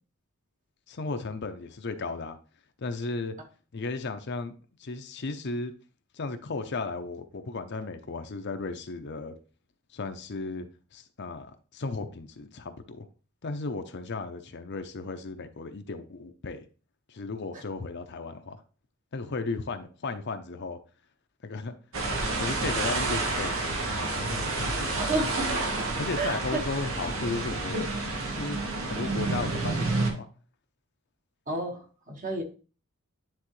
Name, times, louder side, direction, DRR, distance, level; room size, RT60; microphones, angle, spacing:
voice 1, 0.9-2.4 2.8-3.3 3.7-4.5 4.8-5.7 6.1-9.3 9.9-10.7 10.9-13.1 13.4-16.6 17.1-18.6 19.1-20.8 21.4-21.7 22.4-23.8 24.1-24.8 26.0-27.8 28.4-30.3, left 3 dB, 55° left, 0.6 m, -35 dB
sound 1, 21.9-30.1, right 2 dB, 70° right, 1.3 m, -29 dB
voice 2, 25.0-25.6 26.2-26.6 27.7-27.8 31.5-31.8 32.1-32.4, right 1 dB, 40° right, 1.4 m, -30 dB
9.7 x 3.7 x 3.1 m
head